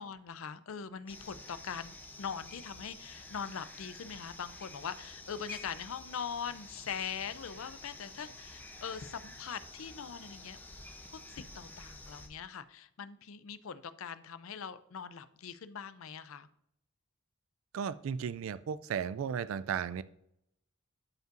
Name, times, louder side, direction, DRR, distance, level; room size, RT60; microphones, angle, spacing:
voice 1, 0.0-10.6 11.1-16.5, left 7 dB, 80° left, 14 dB, 0.5 m, -42 dB
sound 1, 1.1-12.3, left 2 dB, 10° left, 0.7 m, -50 dB
voice 2, 17.7-20.0, right 7 dB, 75° right, 15 dB, 0.3 m, -35 dB
12.5 x 5.3 x 2.6 m, 0.75 s
head